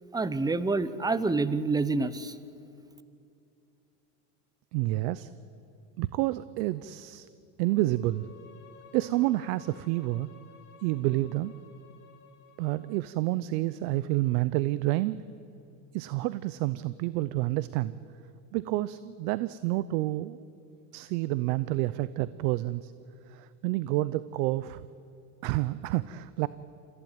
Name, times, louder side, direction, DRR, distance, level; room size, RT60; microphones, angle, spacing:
voice 1, 0.1-2.3, right 3 dB, 10° right, 15 dB, 0.8 m, -27 dB
voice 2, 4.7-5.3 6.0-7.3 7.6-8.3 8.9-10.3 10.8-11.5 12.6-15.2 15.9-17.9 18.5-20.4 20.9-22.9 23.3-24.8 25.4-26.5, right 17 dB, 70° right, 16 dB, 0.8 m, -29 dB
Bowed string instrument, 7.9-13.1, left 6 dB, 20° left, 6.7 m, -55 dB
25.5 x 15.5 x 9.1 m, 2.6 s
supercardioid pair, 110°, 48 cm